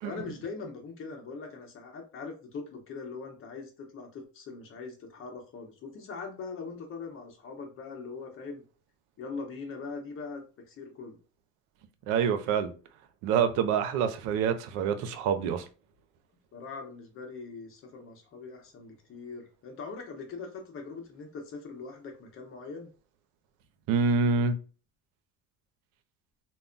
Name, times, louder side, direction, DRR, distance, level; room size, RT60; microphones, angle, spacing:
voice 1, 0.0-8.6 9.2-11.2 16.5-22.9, left 4 dB, 45° left, 0.8 m, -41 dB
voice 2, 12.1-12.7 13.2-15.6 23.9-24.6, right 6 dB, 85° right, 0.5 m, -26 dB
2.2 x 2.0 x 3.8 m
cardioid pair, 125°, 29 cm